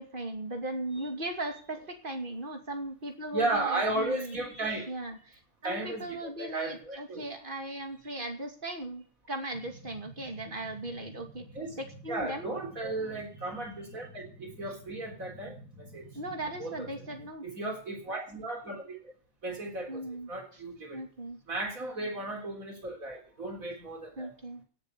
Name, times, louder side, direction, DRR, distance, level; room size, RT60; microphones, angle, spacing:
voice 1, 0.0-4.4 4.9-11.5 11.8-12.5 13.0-13.2 16.1-17.5 19.9-20.3 20.9-21.4 24.2-24.6, right 1 dB, 40° right, 5 dB, 2.7 m, -38 dB
voice 2, 3.3-4.9 5.6-7.3 8.1-8.2 11.5-11.8 12.1-15.6 15.9-16.0 16.6-16.9 17.4-19.0 19.4-21.0 21.5-24.3, right 2 dB, 80° right, 2 dB, 4.3 m, -35 dB
sound 1, 9.5-17.3, right 1 dB, 15° right, 6.7 m, -50 dB
17.0 x 7.6 x 6.8 m, 0.42 s
omnidirectional pair, 1.4 m